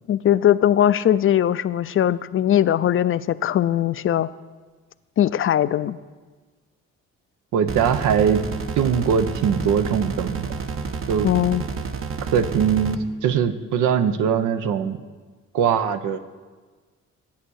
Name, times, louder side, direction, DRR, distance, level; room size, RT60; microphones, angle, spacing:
voice 1, 0.1-4.3 5.2-6.0 11.2-11.7, left 11 dB, 45° left, 15 dB, 0.4 m, -20 dB
voice 2, 7.5-8.4 8.8-10.5 11.1-11.3 12.2-15.0 15.5-16.2, right 7 dB, 85° right, 10 dB, 0.8 m, -21 dB
sound 1, 7.7-13.0, right 5 dB, 45° right, 0.8 m, -30 dB
11.5 x 8.5 x 6.3 m, 1.4 s
cardioid pair, 90°, 30 cm